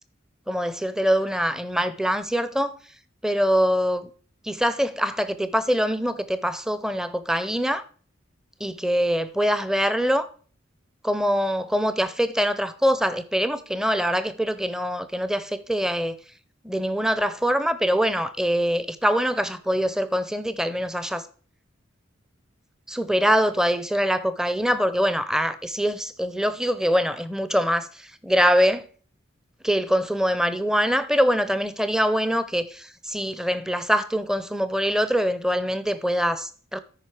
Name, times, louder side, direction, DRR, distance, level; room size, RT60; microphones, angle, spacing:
voice 1, 0.5-2.8 3.2-4.1 4.4-7.8 8.6-10.3 11.0-16.2 16.6-21.3 22.9-28.8 29.6-36.8, equal, 5° right, 0.5 m, -24 dB
13.5 x 5.2 x 4.8 m
head